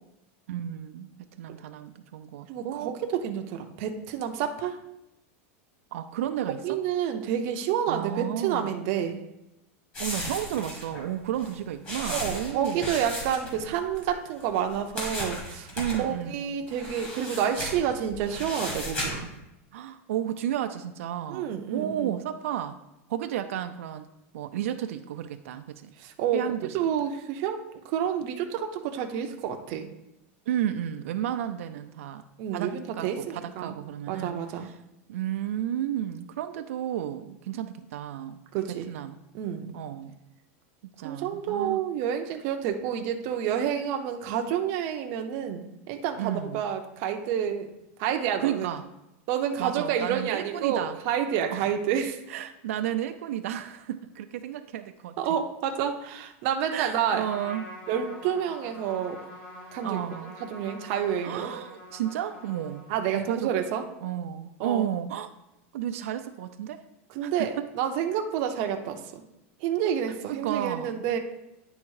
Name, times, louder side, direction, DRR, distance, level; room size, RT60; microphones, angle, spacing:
voice 1, 0.5-1.1 1.4-2.9 5.9-6.6 7.9-8.8 10.0-12.9 15.7-16.4 19.7-22.8 23.1-24.1 24.3-25.9 26.3-26.6 30.5-32.2 32.5-34.7 35.1-38.4 38.9-39.2 39.7-40.2 41.0-41.8 46.2-46.6 48.4-48.9 49.6-51.0 51.5-51.7 52.3-55.2 56.7-57.7 59.8-60.4 61.2-62.9 63.1-63.5 64.0-65.3 65.7-66.8 67.2-67.7 70.3-71.0, right 11 dB, 80° right, 8 dB, 0.5 m, -32 dB
voice 2, 2.5-4.8 6.6-9.2 12.1-15.7 16.0-19.3 21.3-22.2 26.0-26.5 26.7-29.9 32.4-33.8 34.1-34.7 38.5-38.9 39.3-39.7 41.0-47.7 48.0-48.7 49.3-52.2 55.2-57.3 57.9-59.2 59.7-61.5 62.9-63.8 64.6-64.9 67.1-69.2 69.6-71.2, right 9 dB, 40° right, 4 dB, 0.6 m, -29 dB
sound 1, 9.9-14.1 14.4-16.0 16.7-19.3, equal, 20° left, 1.6 m, -35 dB
Trumpet, 57.1-63.2, equal, 50° left, 2.0 m, -45 dB
9.7 x 3.6 x 4.7 m, 0.89 s
supercardioid pair, 180°, 7 cm